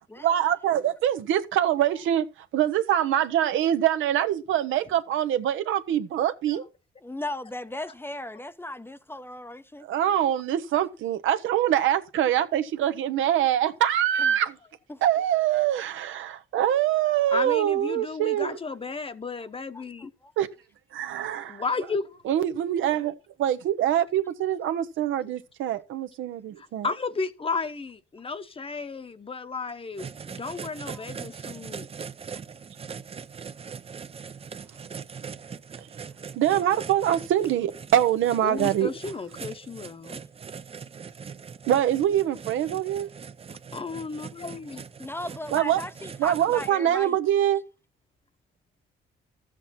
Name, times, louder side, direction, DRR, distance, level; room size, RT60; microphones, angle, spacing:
voice 1, 0.2-6.6 9.8-14.6 15.0-18.6 20.4-20.5 20.9-21.6 22.2-23.1 23.4-26.9 35.8-35.9 36.3-38.9 41.7-43.1 45.5-45.8 46.2-47.6, right 11 dB, 80° right, 0.9 m, -24 dB
voice 2, 7.0-9.9 14.2-14.3 14.9-15.0 19.7-20.3 30.9-31.1 45.0-47.2, left 1 dB, 10° left, 0.6 m, -37 dB
voice 3, 17.3-20.1 21.5-22.2 26.6-31.9 38.4-40.2 43.7-44.8, left 4 dB, 30° left, 0.9 m, -33 dB
sound 1, 30.0-46.7, right 6 dB, 30° right, 0.5 m, -41 dB
13.0 x 7.6 x 4.2 m
cardioid pair, 90°, 20 cm